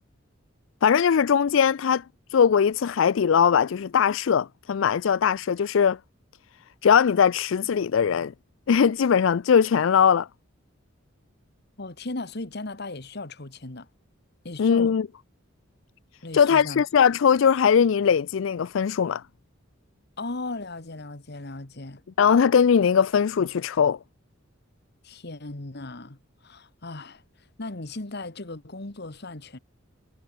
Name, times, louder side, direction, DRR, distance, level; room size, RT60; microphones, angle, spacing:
voice 1, 0.8-2.0 2.3-6.0 6.8-8.3 8.7-10.3 14.6-15.1 16.3-19.2 22.2-24.0, left 7 dB, 70° left, 0.4 m, -20 dB
voice 2, 11.8-13.9 14.4-14.9 16.2-16.8 20.2-22.0 25.0-29.6, left 2 dB, 55° left, 1.8 m, -37 dB
head